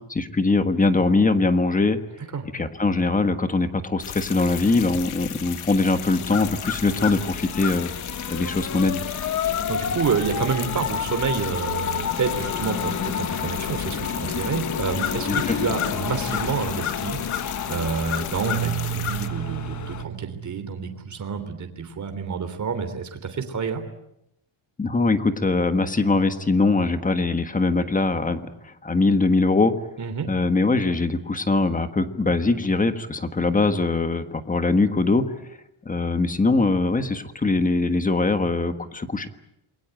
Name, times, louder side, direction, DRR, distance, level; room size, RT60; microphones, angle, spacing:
voice 1, 0.1-2.0 2.5-7.9 8.3-9.0 15.3-15.6 24.8-29.7 30.3-35.2 35.8-39.3, left 3 dB, 15° left, 9 dB, 1.4 m, -22 dB
sound 1, 4.0-19.3, left 10 dB, 85° left, 2.0 m, -34 dB
sound 2, 6.1-20.0, left 7 dB, 35° left, 1.3 m, -30 dB
voice 2, 9.4-23.8 30.0-30.3, right 5 dB, 35° right, 7 dB, 3.3 m, -28 dB
Keyboard (musical), 18.4-21.5, right 12 dB, 65° right, 2.4 m, -32 dB
28.0 x 22.5 x 9.0 m, 0.81 s
cardioid pair, 175°, 49 cm